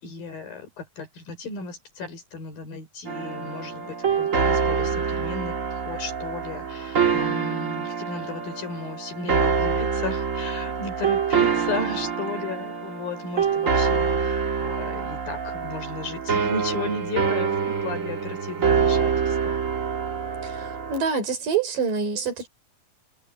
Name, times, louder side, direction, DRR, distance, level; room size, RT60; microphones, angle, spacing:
voice 1, 0.0-19.6, left 4 dB, 75° left, 7.0 m, -35 dB
sound 1, 3.0-21.0, right 6 dB, 45° right, 1.1 m, -25 dB
voice 2, 20.4-22.5, right 5 dB, 65° right, 5.8 m, -26 dB
omnidirectional pair, 4.1 m